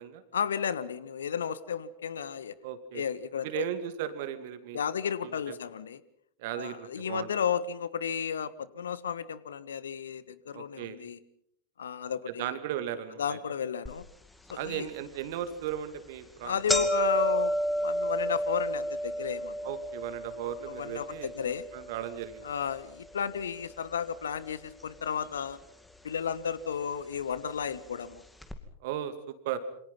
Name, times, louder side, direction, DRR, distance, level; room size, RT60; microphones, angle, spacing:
voice 1, 0.3-2.6 2.9-3.7 4.7-6.0 6.6-11.2 11.8-12.5 13.2-14.1 14.5-14.9 16.4-19.7 20.7-21.7 22.4-25.6 26.0-28.2, left 7 dB, 65° left, 17 dB, 1.4 m, -33 dB
voice 2, 2.6-3.0 3.4-4.8 5.2-5.6 6.4-7.3 10.5-11.0 12.4-13.4 14.5-16.8 19.6-21.3 21.7-22.5 28.8-29.6, right 10 dB, 50° right, 11 dB, 2.6 m, -36 dB
sound 1, 13.9-14.0 14.5-14.6 15.4-15.6 15.9-16.1 16.3-24.5 24.8-25.5 26.3-26.4 27.4-27.5 27.7-27.8 28.4-28.5, equal, 5° left, 2.5 m, -32 dB
28.0 x 26.0 x 5.7 m, 0.68 s
figure-of-eight pair, 90°, 0 cm